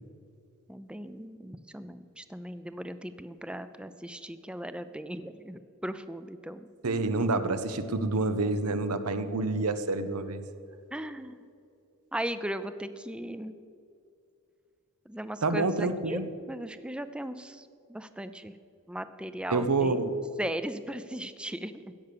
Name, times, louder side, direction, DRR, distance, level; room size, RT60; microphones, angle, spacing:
voice 1, 0.7-7.2 10.9-11.4 12.1-13.5 15.1-16.2 16.5-18.5 18.9-20.0 20.4-21.9, right 1 dB, 5° right, 12 dB, 0.4 m, -38 dB
voice 2, 6.8-10.4 15.4-16.3 19.5-20.2, right 3 dB, 90° right, 10 dB, 0.9 m, -28 dB
16.5 x 6.9 x 6.8 m, 2.5 s
head